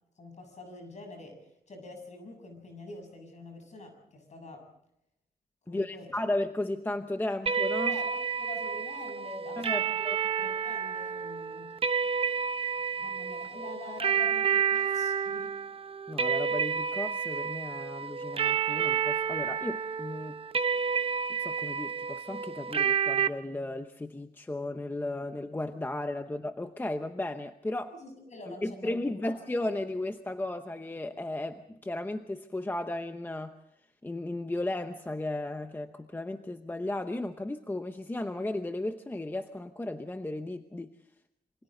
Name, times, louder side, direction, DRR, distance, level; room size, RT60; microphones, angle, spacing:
voice 1, 0.2-1.4 1.7-4.7 5.7-6.3 7.9-8.1 8.4-10.0 10.4-11.8 13.0-15.6 27.9-29.4, left 2 dB, 45° left, 5 dB, 7.4 m, -46 dB
voice 2, 5.7-8.0 9.6-10.2 16.1-20.4 21.4-27.9 28.5-33.6 34.0-40.9, left 1 dB, 15° left, 7 dB, 0.8 m, -35 dB
sound 1, 7.5-23.3, right 7 dB, 35° right, 0.8 m, -30 dB
28.0 x 25.0 x 3.9 m, 0.78 s
wide cardioid pair, 180°, 16 cm